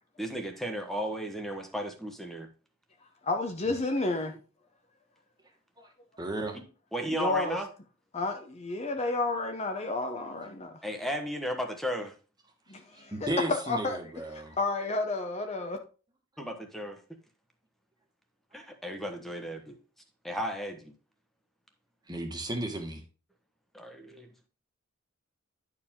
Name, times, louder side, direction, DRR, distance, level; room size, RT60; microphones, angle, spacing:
voice 1, 0.2-2.5 6.9-7.7 10.8-12.1 16.4-17.0 18.5-19.7 20.2-20.9 23.7-24.3, equal, ahead, 1.1 m, -34 dB
voice 2, 3.2-4.4 7.1-7.6 8.1-10.8 12.7-14.0 14.3-15.8, left 3 dB, 30° left, 0.8 m, -31 dB
voice 3, 6.2-6.6 13.0-14.6 22.1-23.0, right 1 dB, 20° right, 1.4 m, -34 dB
10.5 x 4.8 x 3.6 m
head